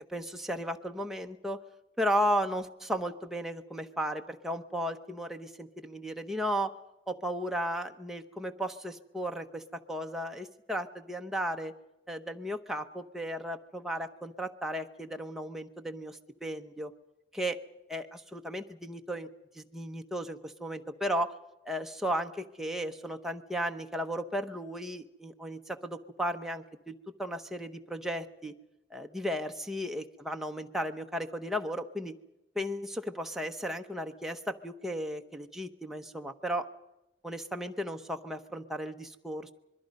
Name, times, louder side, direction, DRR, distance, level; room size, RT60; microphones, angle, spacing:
voice 1, 0.1-1.6 2.0-6.7 7.1-11.7 12.1-16.9 17.3-17.6 17.9-19.3 19.5-21.3 21.6-28.5 28.9-32.1 32.5-36.7 37.2-39.5, equal, ahead, 3 dB, 0.9 m, -35 dB
26.0 x 22.0 x 5.4 m, 0.95 s
head